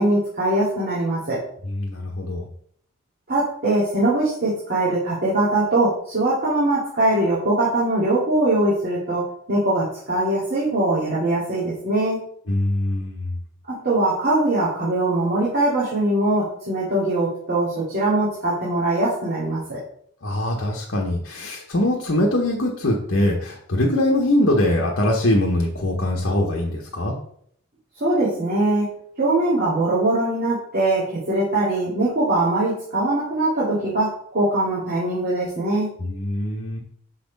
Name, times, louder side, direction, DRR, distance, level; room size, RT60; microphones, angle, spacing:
voice 1, 0.0-1.4 3.3-12.2 13.6-19.8 28.0-28.9 29.2-35.9, right 2 dB, 45° right, -10 dB, 2.5 m, -22 dB
voice 2, 1.6-2.5 12.5-13.3 20.2-27.2 36.0-36.8, left 1 dB, 60° left, -2 dB, 1.0 m, -22 dB
6.0 x 4.2 x 5.2 m, 0.65 s
head